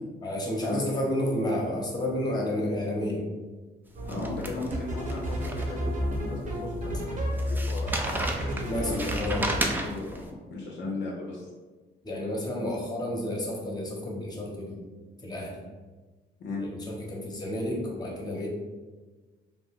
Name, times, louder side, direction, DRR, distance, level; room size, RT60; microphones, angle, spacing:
voice 1, 0.2-3.3 8.6-9.5 12.0-14.8 15.2-15.6 16.6-18.5, left 1 dB, 20° left, -2 dB, 0.8 m, -31 dB
sound 1, 3.9-4.3 4.7-9.7, equal, 40° right, 0.8 m, -31 dB
sound 2, 4.0-6.1 6.5-6.6 7.4-10.2, right 1 dB, 10° right, 0.3 m, -33 dB
voice 2, 4.1-7.2 7.4-8.3 8.8-11.5 16.4-16.6, left 2 dB, 65° left, -2 dB, 0.6 m, -37 dB
2.5 x 2.2 x 3.5 m, 1.3 s
cardioid pair, 90°, 20 cm